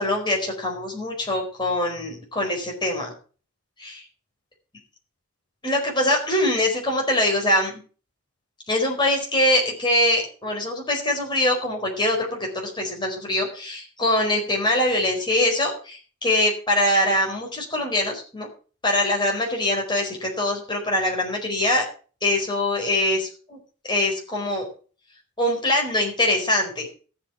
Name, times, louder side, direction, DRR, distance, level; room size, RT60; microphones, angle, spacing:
voice 1, 0.0-3.1 3.8-4.0 5.6-7.8 8.7-18.5 18.8-21.8 22.2-23.6 23.9-24.6 25.4-26.9, left 1 dB, 20° left, 0 dB, 4.5 m, -23 dB
13.5 x 8.4 x 5.9 m, 0.38 s
head